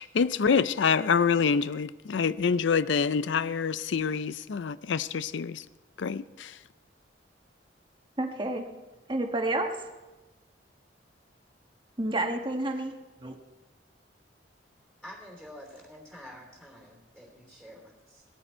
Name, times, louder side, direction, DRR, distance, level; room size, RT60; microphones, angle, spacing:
voice 1, 0.0-5.6 6.0-6.6, left 6 dB, 75° left, 0.4 m, -26 dB
voice 2, 8.2-8.7 9.1-9.7 12.0-12.9 13.2-13.4, right 2 dB, 25° right, 1.3 m, -29 dB
voice 3, 15.0-18.3, equal, 5° left, 2.9 m, -48 dB
18.0 x 13.5 x 4.4 m
head